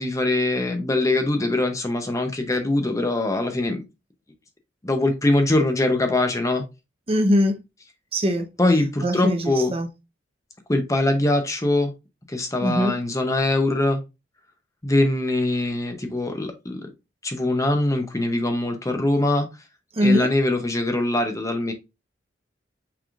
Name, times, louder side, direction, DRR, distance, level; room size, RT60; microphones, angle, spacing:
voice 1, 0.0-3.8 4.8-6.6 8.6-9.7 10.7-11.9 12.3-14.0 14.8-16.9 17.2-19.5 20.0-21.7, left 2 dB, 15° left, 0.7 m, -22 dB
voice 2, 7.1-7.6 8.1-8.5 9.0-9.9 12.6-12.9 19.9-20.3, equal, 30° right, 0.8 m, -21 dB
5.8 x 3.5 x 2.4 m
head